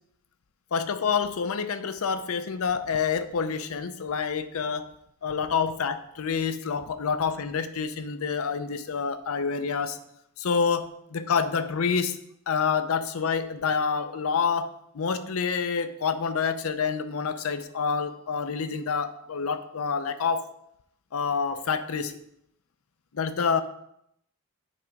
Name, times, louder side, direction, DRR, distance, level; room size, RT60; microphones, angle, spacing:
voice 1, 0.7-4.9 5.2-10.0 10.4-12.2 12.5-20.5 21.1-22.2 23.1-23.6, left 6 dB, 85° left, 11 dB, 0.6 m, -27 dB
8.6 x 3.5 x 5.2 m, 0.76 s
head